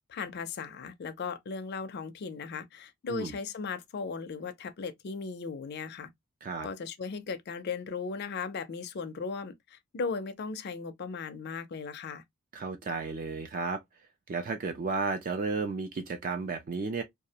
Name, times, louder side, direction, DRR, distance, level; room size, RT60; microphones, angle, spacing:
voice 1, 0.1-6.1 6.6-12.2, left 5 dB, 50° left, 0.4 m, -37 dB
voice 2, 12.5-13.8 14.3-17.0, right 4 dB, 40° right, 0.3 m, -33 dB
2.3 x 2.0 x 2.7 m
head